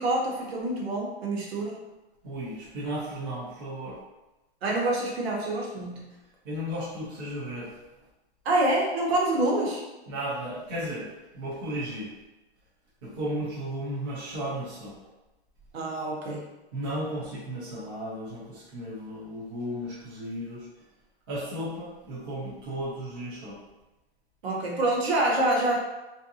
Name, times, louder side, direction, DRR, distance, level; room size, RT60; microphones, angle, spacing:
voice 1, 0.0-1.8 4.6-6.1 8.4-9.8 15.7-16.4 24.4-25.8, right 1 dB, 70° right, -2 dB, 1.0 m, -26 dB
voice 2, 2.2-4.0 6.4-7.7 10.1-12.1 13.0-15.0 16.7-20.7 21.3-23.6, equal, 20° right, -8 dB, 0.5 m, -34 dB
3.4 x 2.6 x 2.7 m, 1.0 s
supercardioid pair, 180°, 33 cm